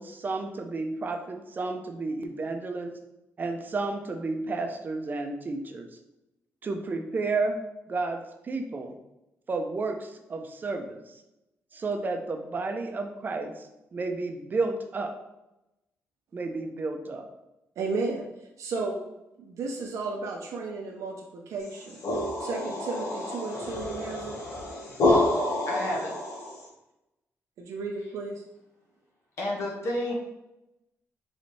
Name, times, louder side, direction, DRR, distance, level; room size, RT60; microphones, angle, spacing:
voice 1, 0.0-2.9 3.4-5.9 6.6-7.6 7.9-8.9 9.5-11.0 11.7-15.1 16.3-17.2, right 3 dB, 35° right, 4 dB, 0.5 m, -32 dB
voice 2, 17.8-18.2 18.6-19.1 19.4-22.0 22.4-24.5 27.6-28.4, right 3 dB, 85° right, 0 dB, 0.6 m, -33 dB
sound 1, 21.7-26.6, left 1 dB, 85° left, 1.3 m, -28 dB
voice 3, 25.7-26.1 29.4-30.1, left 1 dB, 65° left, -3 dB, 1.2 m, -30 dB
4.0 x 3.2 x 3.2 m, 0.91 s
cardioid pair, 120°, 5 cm